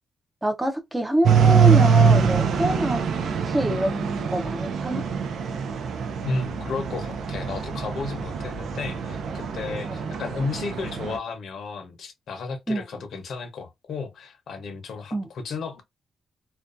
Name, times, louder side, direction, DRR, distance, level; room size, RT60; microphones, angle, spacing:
voice 1, 0.4-3.0 3.5-5.0 9.8-10.1 12.7-13.0 15.1-15.3, right 1 dB, 10° right, 0.4 m, -26 dB
sound 1, 1.2-11.2, right 6 dB, 65° right, 0.4 m, -23 dB
voice 2, 6.2-15.8, left 4 dB, 65° left, 0.6 m, -33 dB
2.4 x 2.2 x 2.4 m
wide cardioid pair, 155°, 0 cm